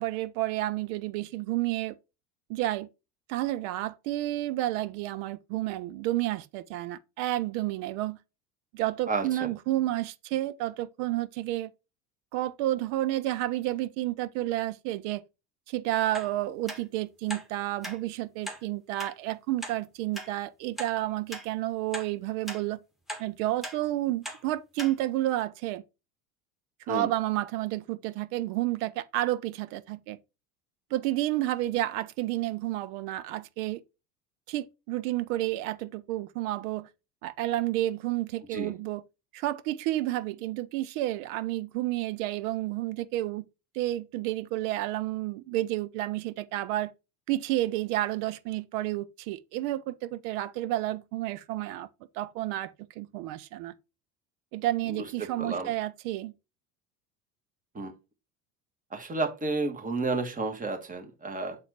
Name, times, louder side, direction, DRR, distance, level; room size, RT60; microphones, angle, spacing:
voice 1, 0.0-2.0 2.5-2.9 3.3-8.2 8.7-11.7 12.3-15.2 15.7-22.8 23.2-25.8 26.9-30.2 30.9-33.8 34.5-36.9 37.2-39.0 39.3-43.5 43.7-46.9 47.3-51.9 52.1-53.7 54.5-56.3, right 15 dB, 45° right, 0.5 m, -30 dB
voice 2, 9.1-9.5 26.9-27.1 38.5-38.7 54.9-55.7 57.7-57.9 58.9-61.6, right 3 dB, 15° right, 1.5 m, -31 dB
sound 1, 16.1-16.3 16.7-16.8 17.3-17.5 17.8-18.0 18.4-18.6 19.0-19.1 19.6-19.7 20.1-20.3 20.8-20.9 21.3-21.5 21.9-22.1 22.5-22.6 23.1-23.2 23.6-23.8 24.2-24.4 24.8-24.9 25.4-25.5, equal, ahead, 1.5 m, -38 dB
6.7 x 4.1 x 4.3 m
figure-of-eight pair, 75°, 47 cm